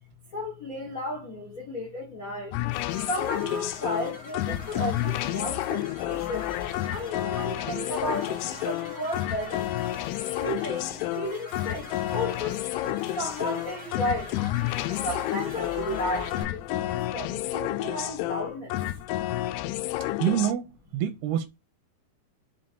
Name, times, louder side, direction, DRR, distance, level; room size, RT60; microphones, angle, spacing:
voice 1, 0.3-2.6 2.9-6.5 6.9-9.7 10.2-14.3 14.9-18.8 19.2-19.4, equal, 75° left, 0.8 m, -34 dB
sound 1, 2.5-20.5, left 15 dB, 90° left, 2.7 m, -30 dB
sound 2, 2.7-16.4, left 1 dB, 50° left, 1.3 m, -44 dB
voice 2, 20.2-21.5, right 10 dB, 85° right, 2.6 m, -26 dB
6.4 x 3.9 x 4.5 m
omnidirectional pair, 4.6 m